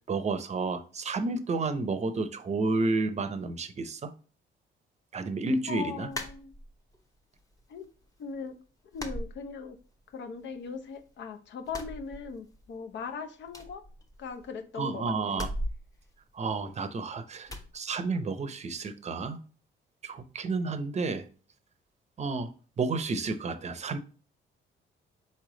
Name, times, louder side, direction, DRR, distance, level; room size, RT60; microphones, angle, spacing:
voice 1, 0.1-4.1 5.1-6.1 14.8-15.5 16.3-19.4 20.0-21.2 22.2-22.5 22.8-24.0, right 3 dB, 35° right, 10 dB, 0.6 m, -31 dB
voice 2, 5.7-6.5 7.7-7.9 8.2-8.5 8.9-9.8 10.1-13.8 14.2-15.4, left 5 dB, 65° left, 8 dB, 0.7 m, -39 dB
sound 1, 6.1-7.0 7.4-8.1 8.3-8.5 8.9-10.1 10.4-11.2 11.6-12.8 13.0-13.1 13.5-14.6 15.3-17.0 17.5-17.7, left 1 dB, 15° left, 0.8 m, -39 dB
4.3 x 3.2 x 3.8 m, 0.38 s
cardioid pair, 90°, 20 cm